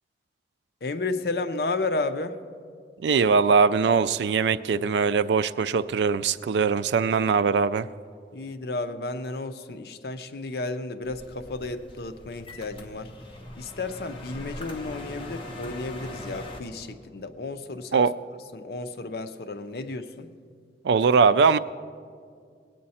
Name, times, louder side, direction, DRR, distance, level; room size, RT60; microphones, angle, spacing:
voice 1, 0.8-2.4 8.3-13.1 13.5-18.1 18.5-20.3, left 3 dB, 60° left, 9 dB, 0.6 m, -32 dB
voice 2, 3.0-7.9 17.9-18.1 20.8-21.6, right 5 dB, 80° right, 14 dB, 0.3 m, -21 dB
sound 1, 11.0-16.6, left 1 dB, 30° left, 1.0 m, -41 dB
19.0 x 8.6 x 4.2 m, 2.2 s
head